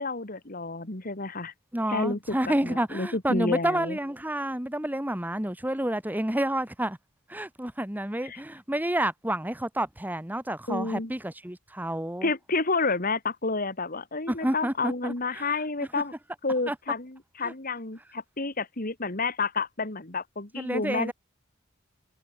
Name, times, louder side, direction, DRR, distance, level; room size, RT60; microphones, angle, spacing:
voice 1, 0.0-1.5 1.9-2.4 2.6-4.0 8.2-8.4 10.7-11.1 12.2-16.1 16.4-21.1, left 3 dB, 45° left, 2.5 m, -30 dB
voice 2, 1.7-7.0 7.3-12.3 14.3-15.5 16.7-16.8 17.4-17.5 20.6-21.1, right 1 dB, 10° right, 1.7 m, -29 dB
head